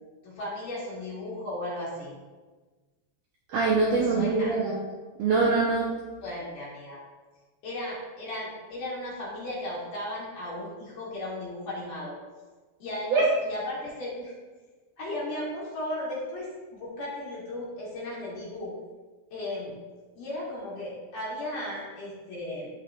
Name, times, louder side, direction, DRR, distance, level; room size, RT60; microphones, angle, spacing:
voice 1, 0.2-2.1 3.9-4.6 6.2-7.0 7.6-12.2 12.8-14.3 15.0-18.7 19.3-19.7 20.2-22.7, left 1 dB, 55° left, -6 dB, 3.6 m, -36 dB
voice 2, 3.5-4.8 5.2-5.9 13.1-13.3, right 4 dB, 70° right, -4 dB, 2.0 m, -23 dB
15.5 x 5.3 x 2.5 m, 1.3 s
omnidirectional pair, 4.7 m